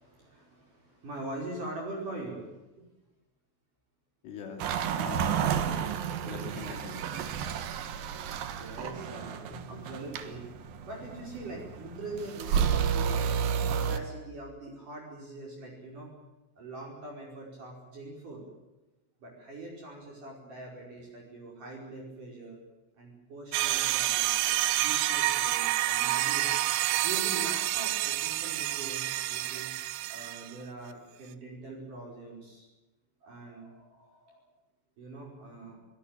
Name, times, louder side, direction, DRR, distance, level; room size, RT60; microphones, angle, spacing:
voice 1, 0.0-2.8 4.7-4.8 8.6-10.5 10.8-13.1 13.8-16.1 16.6-18.4 19.2-22.6 23.0-26.6 27.0-32.7 33.2-34.4 35.0-35.8, right 2 dB, 40° right, -1 dB, 6.3 m, -43 dB
voice 2, 4.2-4.7 4.9-5.9 6.2-7.1, left 5 dB, 75° left, 2 dB, 5.1 m, -42 dB
sound 1, 4.6-14.0, right 8 dB, 65° right, 2.4 m, -31 dB
sound 2, 23.5-30.5, right 15 dB, 80° right, 3.3 m, -28 dB
24.0 x 19.0 x 9.0 m, 1.0 s
omnidirectional pair, 5.8 m